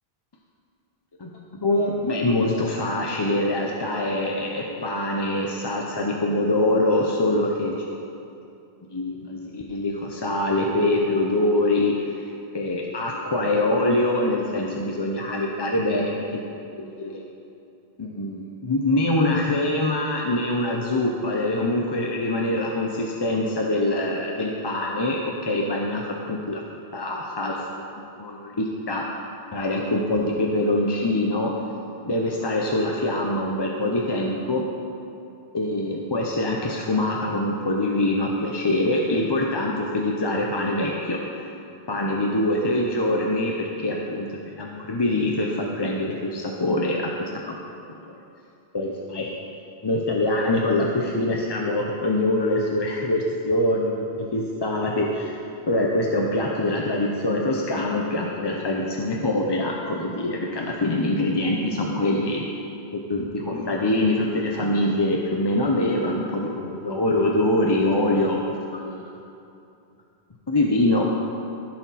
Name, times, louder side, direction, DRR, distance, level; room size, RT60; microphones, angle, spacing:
voice 1, 1.6-7.7 8.9-12.3 12.5-17.2 18.0-26.6 26.9-27.6 27.9-29.0 29.5-31.5 32.1-34.7 35.5-41.4 41.9-47.3 47.9-48.2 48.7-49.3 49.8-55.4 55.7-62.4 63.1-69.1 70.5-71.1, left 1 dB, 30° left, -1 dB, 0.6 m, -24 dB
15.0 x 6.2 x 4.1 m, 2.6 s
omnidirectional pair, 1.1 m